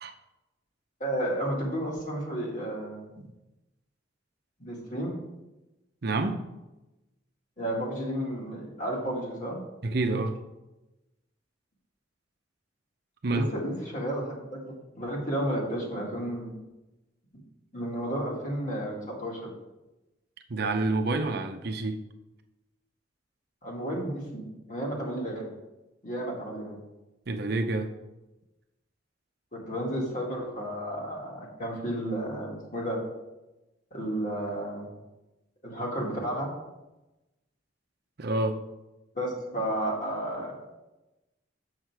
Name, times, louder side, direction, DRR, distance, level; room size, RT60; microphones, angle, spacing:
voice 1, 1.0-3.1 4.6-5.2 7.6-9.6 13.3-16.5 17.7-19.5 23.6-25.5 26.0-26.8 29.5-33.0 33.9-34.9 35.6-36.5 39.1-40.5, right 1 dB, 40° left, -2 dB, 2.0 m, -32 dB
voice 2, 6.0-6.4 9.8-10.4 13.2-13.5 20.5-22.0 27.3-27.9 38.2-38.6, right 2 dB, 55° right, 6 dB, 0.7 m, -28 dB
6.5 x 6.4 x 4.7 m, 1.0 s
head